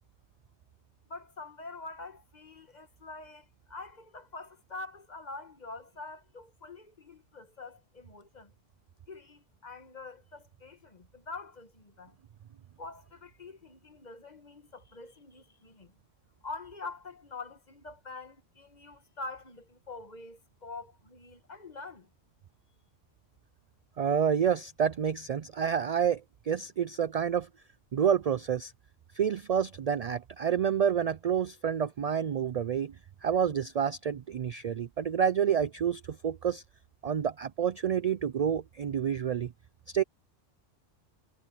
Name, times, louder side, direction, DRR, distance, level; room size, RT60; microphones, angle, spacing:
voice 1, 1.1-8.5 9.1-12.2 12.8-16.0 16.4-22.1, left 3 dB, 40° left, 1.5 m, -45 dB
voice 2, 24.0-27.5 27.9-28.7 29.1-33.0 33.2-36.6 37.0-39.5 39.9-40.0, right 8 dB, 75° right, 0.3 m, -28 dB
omnidirectional pair, 1.2 m